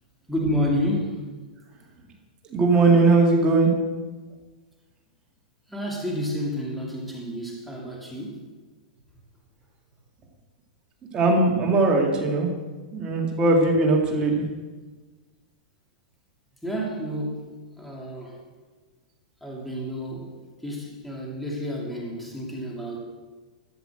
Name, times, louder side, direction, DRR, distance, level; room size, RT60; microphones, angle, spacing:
voice 1, 0.3-1.2 5.7-8.4 16.6-17.5 17.8-18.4 19.4-20.3 20.6-23.0, equal, ahead, -3 dB, 2.6 m, -30 dB
voice 2, 2.5-3.7 11.1-12.5 12.9-14.5, right 3 dB, 20° right, 0 dB, 2.3 m, -19 dB
13.5 x 5.9 x 7.7 m, 1.3 s
hypercardioid pair, 150°, 4 cm